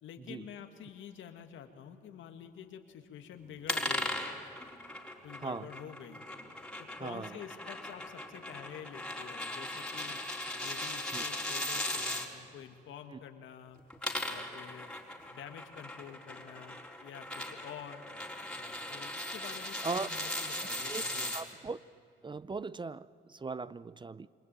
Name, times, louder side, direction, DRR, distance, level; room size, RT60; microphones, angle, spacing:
voice 1, 0.0-4.2 5.2-6.2 6.8-10.2 10.5-13.8 14.3-15.0 15.3-18.0 18.6-21.5, left 8 dB, 80° left, 7 dB, 2.3 m, -48 dB
sound 1, 3.7-12.3 13.8-21.4, left 1 dB, 5° left, 4.0 m, -38 dB
voice 2, 7.0-7.4 11.1-11.2 13.1-13.2 19.8-20.1 20.9-21.0 21.3-21.8 22.2-24.3, right 4 dB, 25° right, 17 dB, 0.6 m, -38 dB
28.5 x 22.5 x 9.3 m, 2.4 s
cardioid pair, 90°, 20 cm